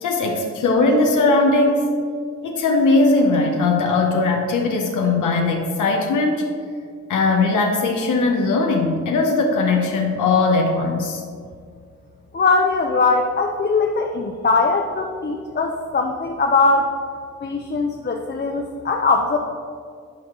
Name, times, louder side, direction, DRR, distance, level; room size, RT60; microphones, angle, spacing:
voice 1, 0.0-1.9 2.4-6.4 7.1-11.2, left 3 dB, 90° left, 1 dB, 0.8 m, -19 dB
voice 2, 12.3-16.9 17.4-19.4, left 3 dB, 35° left, 2 dB, 0.6 m, -20 dB
10.5 x 4.6 x 3.7 m, 2.2 s
cardioid pair, 75°, 30 cm